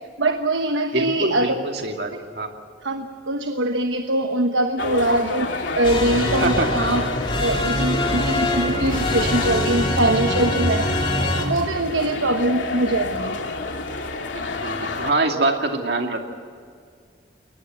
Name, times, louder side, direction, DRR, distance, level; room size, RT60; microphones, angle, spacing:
voice 1, 0.2-1.7 2.8-5.5 5.7-7.0 7.4-10.9 11.3-13.4, right 1 dB, 80° right, 5 dB, 1.2 m, -22 dB
voice 2, 0.9-2.5 6.4-6.7 14.3-16.3, right 2 dB, 55° right, 3 dB, 2.4 m, -24 dB
sound 1, 4.8-15.1, left 3 dB, 85° left, 2.5 m, -30 dB
sound 2, 5.8-11.5, left 1 dB, 25° left, 2.8 m, -24 dB
22.5 x 19.5 x 7.9 m, 2.1 s
head